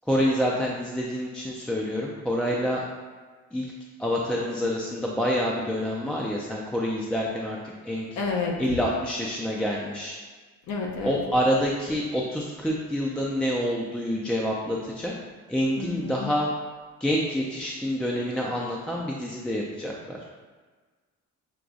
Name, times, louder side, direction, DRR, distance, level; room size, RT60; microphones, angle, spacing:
voice 1, 0.1-2.8 3.5-3.7 4.0-8.2 8.6-10.2 11.0-15.1 15.5-16.5 17.0-20.2, equal, 5° left, -3 dB, 0.4 m, -27 dB
voice 2, 8.2-8.6 10.7-11.2 15.8-16.3, left 4 dB, 70° left, 0 dB, 0.8 m, -30 dB
6.0 x 2.3 x 2.6 m, 1.4 s
cardioid pair, 90°, 30 cm